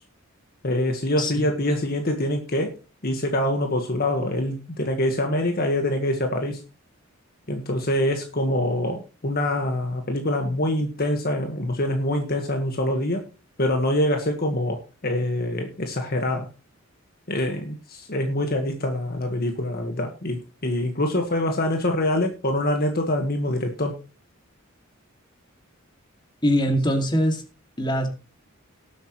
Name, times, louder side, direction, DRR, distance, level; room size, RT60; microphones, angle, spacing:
voice 1, 0.6-2.7 3.0-6.6 7.5-13.2 13.6-16.5 17.3-24.0, left 1 dB, 50° left, 4 dB, 1.6 m, -25 dB
voice 2, 26.4-27.4 27.8-28.1, equal, 20° left, 4 dB, 2.3 m, -22 dB
19.0 x 8.1 x 3.1 m, 0.32 s
head